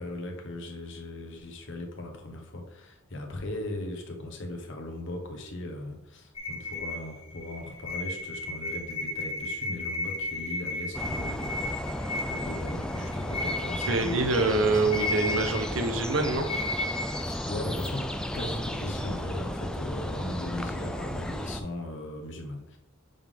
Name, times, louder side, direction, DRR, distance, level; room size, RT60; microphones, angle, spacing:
voice 1, 0.0-15.0 17.2-18.1 18.3-22.8, left 1 dB, 65° left, 2 dB, 1.2 m, -38 dB
sound 1, 6.4-17.9, left 2 dB, 30° left, 0.8 m, -35 dB
sound 2, 10.9-21.6, equal, 5° left, 0.3 m, -34 dB
voice 2, 13.9-16.5, right 3 dB, 75° right, 6 dB, 0.8 m, -25 dB
7.0 x 3.8 x 3.5 m, 0.86 s
head